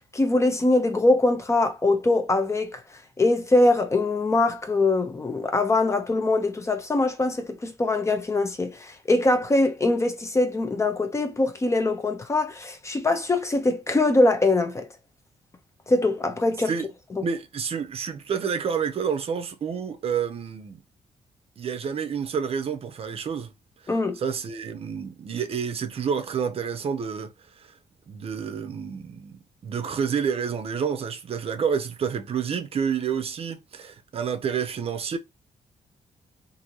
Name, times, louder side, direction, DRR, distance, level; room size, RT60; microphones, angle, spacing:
voice 1, 0.1-2.8 3.2-14.9 15.9-16.7 23.9-24.2, left 2 dB, 20° left, 0.6 m, -22 dB
voice 2, 17.2-20.8 21.6-23.5 24.2-27.7 28.1-29.3 29.6-35.2, right 7 dB, 50° right, 0.6 m, -29 dB
2.7 x 2.6 x 2.8 m
cardioid pair, 95°, 13 cm